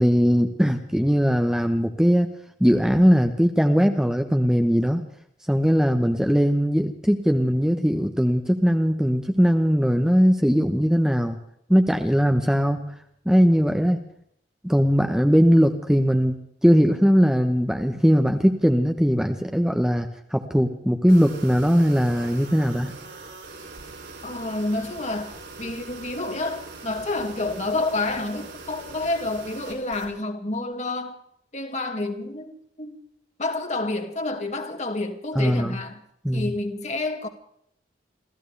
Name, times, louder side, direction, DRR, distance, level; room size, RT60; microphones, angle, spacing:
voice 1, 0.0-2.3 2.6-5.0 5.5-11.4 11.7-12.8 13.2-14.0 14.6-22.9 35.4-35.8 36.2-36.5, equal, 5° right, 1.1 m, -20 dB
sound 1, 21.1-30.1, right 3 dB, 80° right, 6.7 m, -42 dB
voice 2, 24.2-31.2 31.5-33.0 33.4-36.0 36.3-37.3, left 2 dB, 40° left, 2.4 m, -29 dB
28.0 x 15.0 x 3.4 m
head